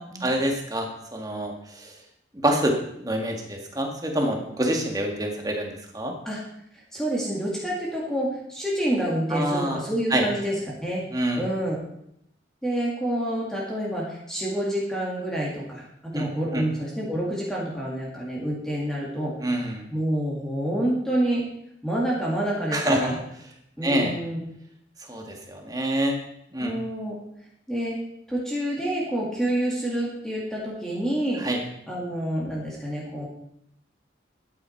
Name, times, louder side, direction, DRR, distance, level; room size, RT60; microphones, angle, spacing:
voice 1, 0.2-2.0 2.4-6.1 9.3-9.8 10.1-10.2 11.1-11.4 16.1-16.6 19.4-19.8 22.7-23.1 23.8-24.1 25.1-26.2 26.5-26.7 31.4-31.6, right 1 dB, 20° right, 2 dB, 1.8 m, -26 dB
voice 2, 6.9-10.6 10.8-11.0 11.4-11.8 12.6-19.3 19.9-21.4 21.8-23.2 23.8-24.4 26.6-27.2 27.7-28.0 28.3-31.4 31.9-33.3, right 1 dB, 5° left, -4 dB, 2.3 m, -28 dB
13.0 x 8.9 x 4.6 m, 0.77 s
head